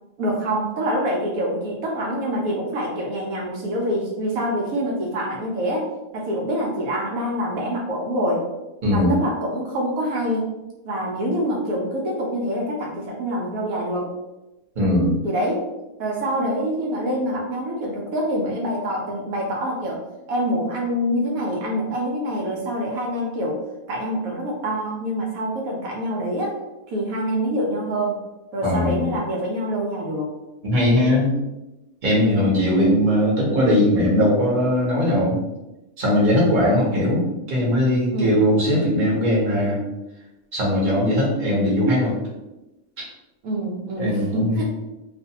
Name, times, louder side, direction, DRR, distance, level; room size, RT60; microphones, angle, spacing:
voice 1, 0.2-8.4 8.9-10.5 10.8-14.1 15.2-15.7 16.0-20.0 20.3-23.6 23.9-26.6 26.9-28.2 28.5-30.3 32.7-33.0 38.1-38.4 43.4-44.7, equal, 80° right, -2 dB, 1.0 m, -25 dB
voice 2, 8.8-9.1 14.8-15.2 28.6-29.2 30.6-31.3 32.0-35.4 36.0-39.8 40.5-42.1 44.0-44.7, left 1 dB, 40° right, -5 dB, 0.9 m, -19 dB
2.5 x 2.4 x 2.8 m, 1.0 s
omnidirectional pair, 1.5 m